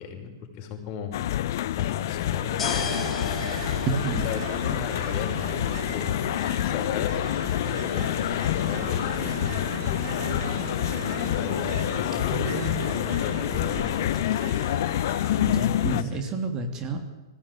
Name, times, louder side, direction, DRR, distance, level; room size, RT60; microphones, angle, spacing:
voice 1, 0.0-1.4 1.7-2.9 4.2-6.1 6.6-10.6 11.3-14.6 15.9-16.2, left 6 dB, 40° left, 2 dB, 5.6 m, -37 dB
sound 1, 1.1-16.0, left 12 dB, 55° left, 0.8 m, -27 dB
Ocean, 2.1-16.2, right 9 dB, 65° right, 1.4 m, -40 dB
sound 2, 2.2-14.2, left 2 dB, 10° left, 5.7 m, -39 dB
voice 2, 3.9-4.3 12.2-13.5 15.4-17.0, right 3 dB, 30° right, 5 dB, 3.0 m, -31 dB
20.0 x 15.5 x 9.4 m, 1.1 s
hypercardioid pair, 115°, 2 cm